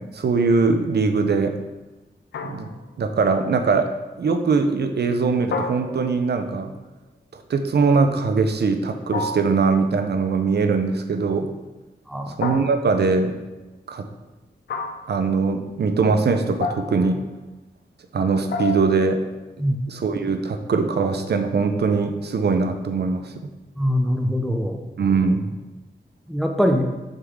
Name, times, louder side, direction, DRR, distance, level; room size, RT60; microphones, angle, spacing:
voice 1, 0.0-1.5 2.4-2.7 3.0-3.9 4.2-6.7 7.3-11.5 12.4-13.3 13.9-14.1 15.1-17.2 18.1-19.2 19.9-23.3 25.0-25.6, right 4 dB, 70° right, 7 dB, 0.7 m, -21 dB
sound 1, 2.3-3.0 5.5-6.4 9.1-9.7 12.4-13.1 14.7-15.2 16.6-17.2 18.5-19.1, left 3 dB, 90° left, 0.6 m, -30 dB
voice 2, 23.8-24.8 26.3-26.9, equal, ahead, 3 dB, 0.8 m, -22 dB
6.6 x 3.6 x 6.3 m, 1.1 s
cardioid pair, 50°, 17 cm